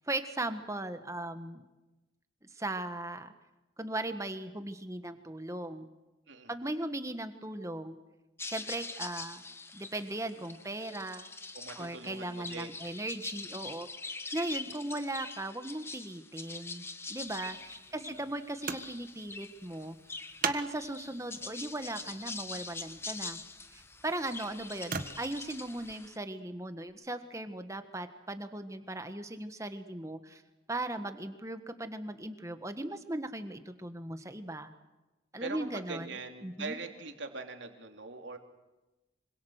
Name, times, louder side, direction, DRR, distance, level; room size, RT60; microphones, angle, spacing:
voice 1, 0.0-1.7 2.5-3.3 3.8-5.9 6.5-8.0 8.4-9.4 9.7-11.3 11.8-13.9 14.3-20.0 20.4-23.4 23.7-30.4 30.7-34.7 35.3-36.1 36.4-36.8, right 1 dB, 15° right, 9 dB, 1.5 m, -38 dB
sound 1, 8.4-26.2, left 3 dB, 15° left, 1.0 m, -44 dB
voice 2, 11.5-12.8 17.9-18.3 35.4-38.4, right 3 dB, 70° right, 4 dB, 3.2 m, -42 dB
sound 2, 17.2-25.9 26.9-27.0, right 5 dB, 45° right, 1.5 m, -43 dB
26.0 x 25.5 x 6.6 m, 1.0 s
head